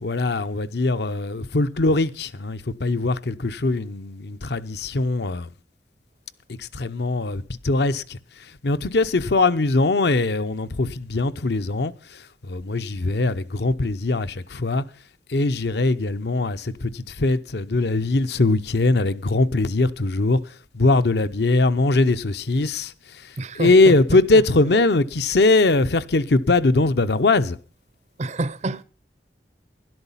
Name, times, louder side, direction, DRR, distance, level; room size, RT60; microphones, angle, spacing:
voice 1, 0.0-5.5 6.5-8.2 8.6-14.8 15.3-20.4 20.7-22.9 23.2-23.3 23.6-27.6, left 2 dB, 65° left, 0.7 m, -21 dB
voice 2, 23.4-23.9 24.3-24.4 28.2-28.8, right 2 dB, 40° right, 0.5 m, -27 dB
12.5 x 11.5 x 5.6 m
head